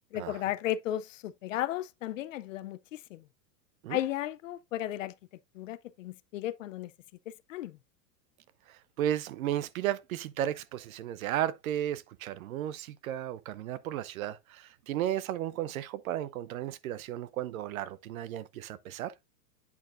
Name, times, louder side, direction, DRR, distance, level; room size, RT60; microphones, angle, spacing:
voice 1, 0.1-3.2 3.9-5.1 5.5-6.9 7.5-7.8, left 13 dB, 50° left, 0.6 m, -34 dB
voice 2, 8.7-19.1, right 12 dB, 55° right, 0.7 m, -34 dB
8.5 x 6.4 x 2.5 m
supercardioid pair, 160°, 50 cm